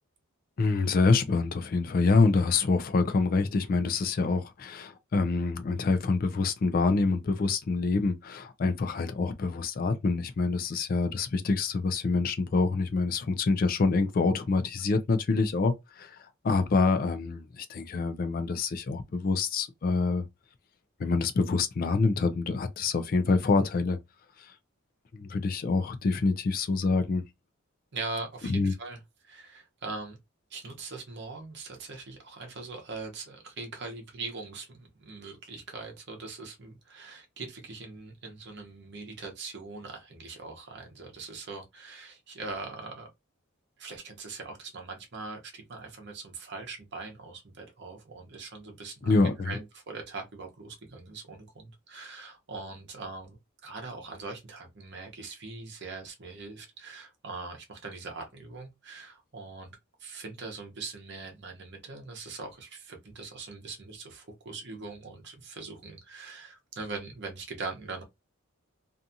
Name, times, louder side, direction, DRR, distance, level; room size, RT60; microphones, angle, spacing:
voice 1, 0.6-16.2 16.4-20.2 21.0-24.0 24.4-24.5 25.1-27.2 28.4-28.7 49.0-49.6, left 4 dB, 45° left, 0.3 m, -26 dB
voice 2, 27.9-30.2 30.5-43.1 43.8-53.4 53.6-68.0, right 3 dB, 55° right, 0.8 m, -41 dB
2.6 x 2.4 x 2.6 m
head